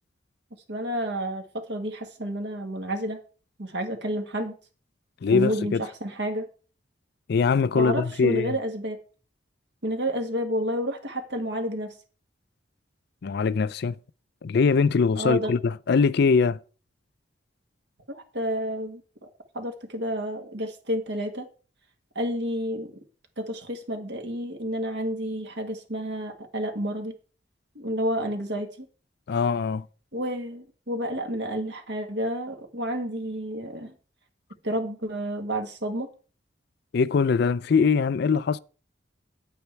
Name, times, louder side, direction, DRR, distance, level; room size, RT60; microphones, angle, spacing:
voice 1, 0.7-3.2 3.6-4.5 5.3-6.5 7.7-9.0 9.8-11.9 15.2-15.5 18.1-19.0 19.5-21.5 22.2-22.9 23.4-27.2 27.8-28.9 30.1-34.0 34.6-36.1, equal, 65° right, 1.8 m, -30 dB
voice 2, 5.2-5.8 7.3-8.5 13.2-14.0 14.4-16.6 29.3-29.8 36.9-38.6, left 5 dB, 60° left, 0.4 m, -22 dB
9.2 x 8.3 x 4.5 m
head